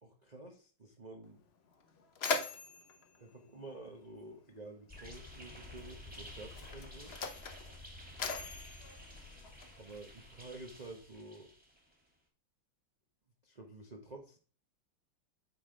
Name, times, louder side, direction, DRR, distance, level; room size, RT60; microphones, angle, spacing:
voice 1, 0.0-1.4 3.2-7.2 9.8-11.5 13.4-14.4, right 2 dB, 55° right, 2 dB, 0.4 m, -50 dB
Mechanisms, 1.2-1.3 1.7-4.4 5.4-5.6 6.4-10.0, left 4 dB, 65° left, 0.6 m, -41 dB
sound 1, 4.9-11.9, left 1 dB, 5° right, 2.2 m, -51 dB
8.1 x 4.2 x 5.0 m, 0.39 s
omnidirectional pair, 2.3 m